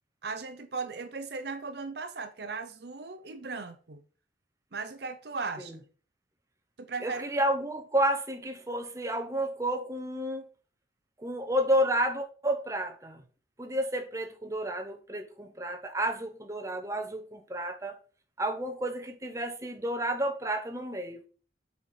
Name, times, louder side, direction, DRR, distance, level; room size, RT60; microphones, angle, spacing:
voice 1, 0.2-4.0 4.7-5.8 6.8-7.3, right 4 dB, 55° right, 0.7 m, -37 dB
voice 2, 7.0-10.5 11.2-13.2 13.6-18.0 18.4-21.2, right 1 dB, 15° right, 0.8 m, -31 dB
7.1 x 4.3 x 4.7 m
head